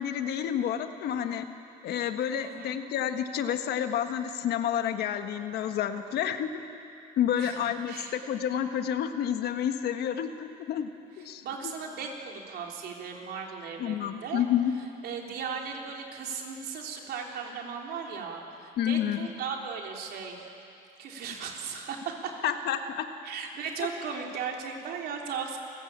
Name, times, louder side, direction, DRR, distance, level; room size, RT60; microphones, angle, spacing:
voice 1, 0.0-1.4 1.8-6.5 7.2-10.9 11.2-11.4 13.8-14.7 18.8-19.3 22.4-23.1, left 9 dB, 70° left, 7 dB, 1.5 m, -29 dB
voice 2, 2.4-2.8 7.4-8.2 11.2-14.4 15.0-20.5 21.0-22.5 23.2-25.6, right 6 dB, 70° right, 1 dB, 3.7 m, -37 dB
28.0 x 15.5 x 8.9 m, 2.7 s
cardioid pair, 110°, 17 cm